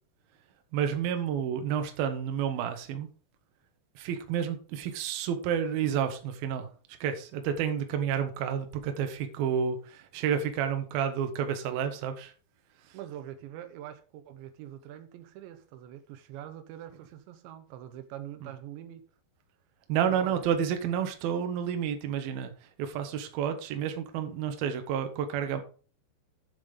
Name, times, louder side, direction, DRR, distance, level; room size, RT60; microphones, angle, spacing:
voice 1, 0.7-3.1 4.0-6.7 7.0-12.3 12.9-13.0 18.4-18.5 19.9-25.6, right 8 dB, 65° right, 2.9 m, -30 dB
voice 2, 12.9-19.0 20.1-20.4, right 11 dB, 85° right, 3.2 m, -44 dB
9.8 x 7.3 x 5.2 m
omnidirectional pair, 5.1 m